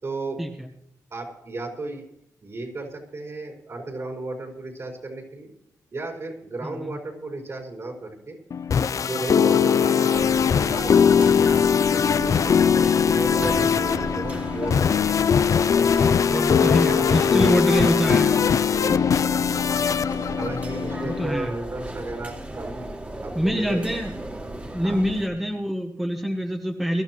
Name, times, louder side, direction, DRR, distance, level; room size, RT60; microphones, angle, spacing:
voice 1, 0.0-0.4 1.1-2.0 2.4-5.5 5.9-8.4 9.1-15.1 15.8-17.6 18.7-19.2 20.3-22.9 23.2-24.0 24.8-25.0, right 2 dB, 50° right, 0 dB, 5.0 m, -34 dB
voice 2, 6.6-7.0 16.2-18.4 20.5-21.5 23.3-24.1 24.7-27.0, equal, 5° right, 3 dB, 1.2 m, -26 dB
sound 1, 8.5-21.3, left 7 dB, 60° left, 0.4 m, -20 dB
sound 2, 10.1-25.3, right 1 dB, 25° right, 2.5 m, -36 dB
22.5 x 13.0 x 3.1 m, 0.76 s
cardioid pair, 80°, 6 cm